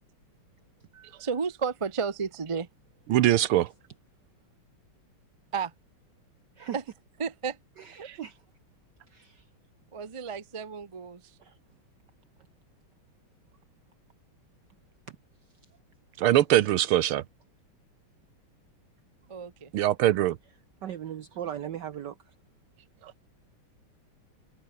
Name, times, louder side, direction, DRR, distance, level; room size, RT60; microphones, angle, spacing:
voice 1, 0.9-2.7 5.5-5.7 6.7-6.8 7.2-7.6 7.8-8.1 9.9-11.4 19.3-19.7, right 5 dB, 45° right, 0.4 m, -33 dB
voice 2, 3.1-3.7 8.0-8.1 16.2-17.2 19.7-20.4, right 13 dB, 80° right, 1.7 m, -22 dB
voice 3, 7.8-8.4 9.1-9.5 11.4-11.6 15.1-15.2 20.8-22.3, right 10 dB, 60° right, 1.5 m, -38 dB
omnidirectional pair, 2.4 m